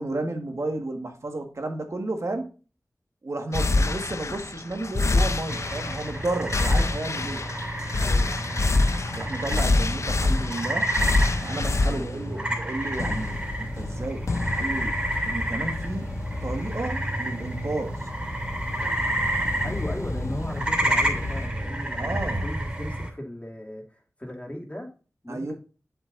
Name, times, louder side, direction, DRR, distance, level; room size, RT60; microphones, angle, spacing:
voice 1, 0.0-2.5 3.2-7.4 9.1-10.9 11.4-14.3 14.5-15.0 15.2-16.1 16.4-18.1 22.0-22.5 25.3-25.5, right 2 dB, 60° right, 1.7 m, -32 dB
sound 1, 3.5-21.5, left 2 dB, 60° left, 0.6 m, -28 dB
sound 2, 5.5-23.1, right 1 dB, 20° right, 3.0 m, -30 dB
voice 2, 8.0-8.6 11.9-12.6 19.6-24.9 25.2-25.5, left 1 dB, 25° left, 2.8 m, -37 dB
7.8 x 7.8 x 2.6 m
cardioid pair, 45°, 6 cm